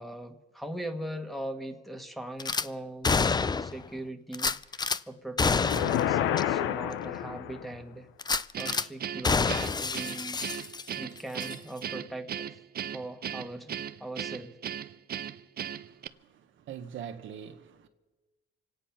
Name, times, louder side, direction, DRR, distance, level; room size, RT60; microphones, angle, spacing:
voice 1, 0.0-8.1 8.6-10.4 11.0-12.3 12.9-13.7 14.0-14.6, right 1 dB, ahead, 1.4 m, -40 dB
Gunshot gunfire / Glass, 2.4-2.7 3.0-3.8 4.3-5.0 5.4-6.0 6.4-6.5 6.9-7.0 8.2-8.9 9.2-11.0 11.4-11.5, left 4 dB, 20° left, 0.4 m, -28 dB
sound 1, 5.5-7.8, left 11 dB, 90° left, 0.7 m, -29 dB
Guitar, 8.5-16.1, right 9 dB, 50° right, 0.6 m, -37 dB
voice 2, 15.7-17.9, right 8 dB, 75° right, 1.3 m, -44 dB
25.5 x 9.1 x 5.8 m
cardioid pair, 90°, 20 cm